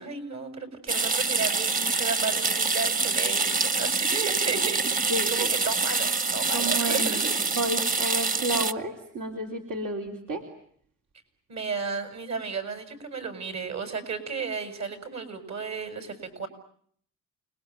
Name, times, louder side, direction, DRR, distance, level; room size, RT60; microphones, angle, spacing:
voice 1, 0.0-7.3 11.5-16.5, right 5 dB, 60° right, 9 dB, 7.0 m, -33 dB
sound 1, 0.9-8.7, right 4 dB, 30° right, 1.2 m, -26 dB
voice 2, 5.1-5.5 6.5-10.5, right 1 dB, 80° right, 2 dB, 3.6 m, -31 dB
29.5 x 22.0 x 9.1 m, 0.64 s
cardioid pair, 90°, 30 cm